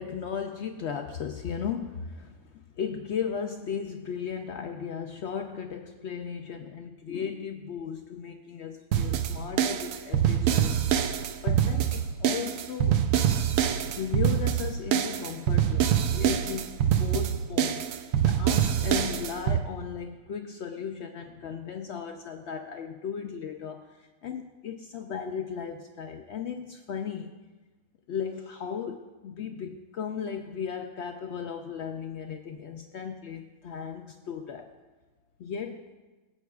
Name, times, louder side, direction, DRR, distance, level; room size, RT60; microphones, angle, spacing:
voice 1, 0.0-10.8 11.4-12.9 13.8-27.4 28.1-34.7 35.4-35.8, left 7 dB, 70° left, 5 dB, 0.6 m, -36 dB
sound 1, 8.9-19.6, right 9 dB, 70° right, 0.9 m, -25 dB
18.5 x 8.2 x 2.3 m, 1.2 s
omnidirectional pair, 1.6 m